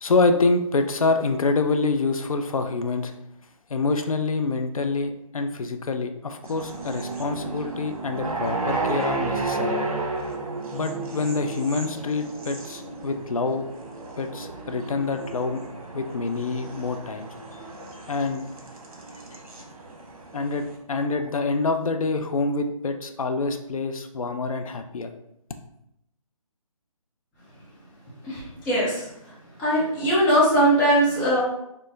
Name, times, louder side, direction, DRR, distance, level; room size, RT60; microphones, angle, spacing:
voice 1, 0.0-3.1 3.7-9.8 10.7-13.6 14.2-15.6 15.9-17.3 18.1-18.4 20.3-25.1, left 3 dB, 70° left, 7 dB, 0.5 m, -26 dB
sound 1, 6.4-20.8, right 2 dB, 70° right, 1.0 m, -33 dB
voice 2, 28.2-29.1 29.6-31.4, right 1 dB, 5° left, -10 dB, 0.6 m, -20 dB
4.4 x 2.1 x 3.3 m, 0.80 s
figure-of-eight pair, 150°, 19 cm